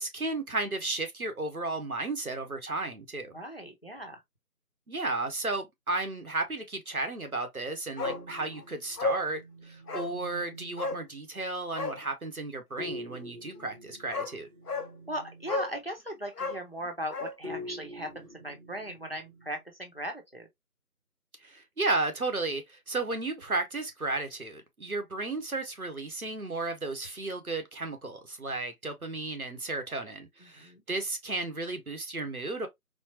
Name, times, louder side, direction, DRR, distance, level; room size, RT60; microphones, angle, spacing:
voice 1, 0.0-3.3 4.9-14.5 21.4-32.7, right 2 dB, 65° right, 1.1 m, -33 dB
voice 2, 3.3-4.2 15.1-20.5 30.4-30.8, equal, 40° left, 0.7 m, -38 dB
Bark, 8.0-8.2 8.5-8.6 9.0-9.3 9.9-10.1 10.8-11.0 11.7-12.0 13.6-13.7 14.1-14.3 14.7-14.9 15.5-15.8 16.3-17.4 17.6-17.7, left 3 dB, 80° left, 0.8 m, -33 dB
sound 1, 8.0-11.2 12.8-15.7 17.4-19.6, left 1 dB, 40° right, 2.0 m, -45 dB
4.2 x 2.0 x 2.8 m
figure-of-eight pair, 170°, 46 cm